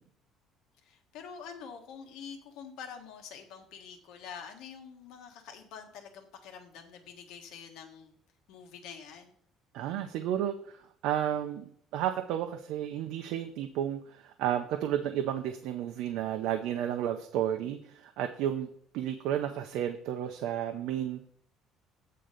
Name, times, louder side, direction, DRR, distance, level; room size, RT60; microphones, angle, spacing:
voice 1, 0.8-8.2 8.5-9.3, left 7 dB, 75° left, 4 dB, 1.5 m, -46 dB
voice 2, 9.7-11.6 11.9-18.7 18.9-21.3, right 10 dB, 75° right, 6 dB, 0.6 m, -32 dB
8.6 x 3.8 x 6.6 m, 0.62 s
cardioid pair, 155°, 0 cm